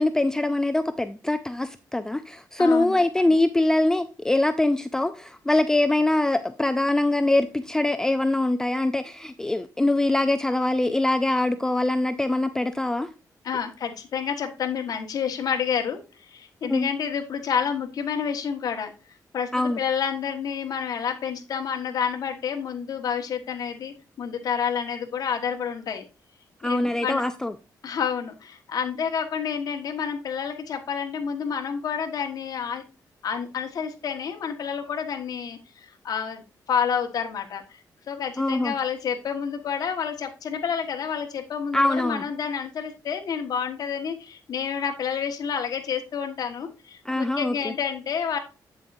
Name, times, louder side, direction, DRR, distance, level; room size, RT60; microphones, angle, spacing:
voice 1, 0.0-13.1 16.7-16.9 19.5-19.8 26.6-27.5 38.4-38.7 41.7-42.2 47.1-47.7, left 2 dB, 10° left, 9 dB, 0.4 m, -23 dB
voice 2, 2.6-3.0 13.4-16.0 16.3-18.9 19.3-26.0 26.6-27.2 27.8-32.8 33.2-36.4 36.7-37.6 38.1-48.4, left 7 dB, 65° left, 4 dB, 1.4 m, -29 dB
8.4 x 7.3 x 2.6 m, 0.31 s
wide cardioid pair, 145°, 7 cm